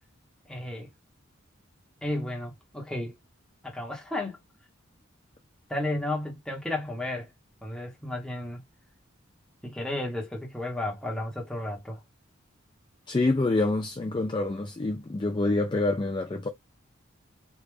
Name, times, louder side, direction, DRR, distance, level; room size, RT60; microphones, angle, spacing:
voice 1, 0.5-0.9 2.0-3.2 3.6-4.4 5.7-7.3 7.6-8.6 9.6-12.0, left 1 dB, 5° left, 1.0 m, -33 dB
voice 2, 13.1-16.5, left 2 dB, 25° left, 0.4 m, -26 dB
3.4 x 2.4 x 3.2 m
head